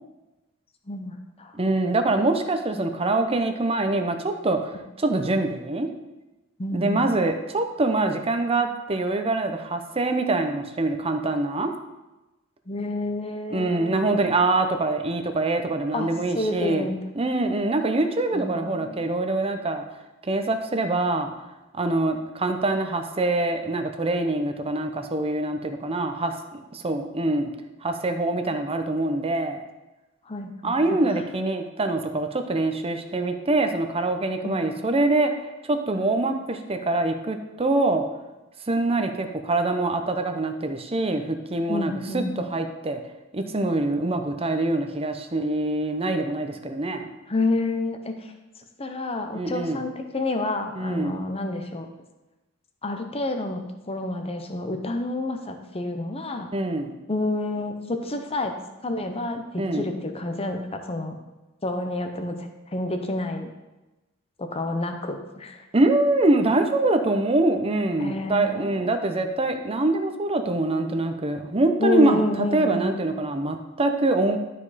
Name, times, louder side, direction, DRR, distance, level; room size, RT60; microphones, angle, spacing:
voice 1, 0.9-1.5 6.6-7.0 12.7-14.2 15.9-16.1 16.4-17.0 18.3-19.0 28.5-28.6 30.3-30.7 34.4-34.7 41.7-42.3 47.3-48.2 48.8-51.9 52.8-56.5 57.1-58.5 58.8-61.2 61.6-63.5 64.4-65.6 68.0-68.9 71.8-73.0, left 2 dB, 25° left, 5 dB, 0.8 m, -29 dB
voice 2, 1.5-5.9 6.7-11.7 13.5-16.9 17.2-19.8 20.2-21.3 21.7-26.3 26.7-27.5 27.8-29.6 30.6-35.3 35.6-38.0 38.7-43.0 43.3-47.1 49.3-49.8 50.8-51.2 56.5-56.9 59.6-59.9 65.7-74.4, right 2 dB, 25° right, 6 dB, 0.7 m, -24 dB
12.0 x 5.1 x 4.2 m, 1.0 s
head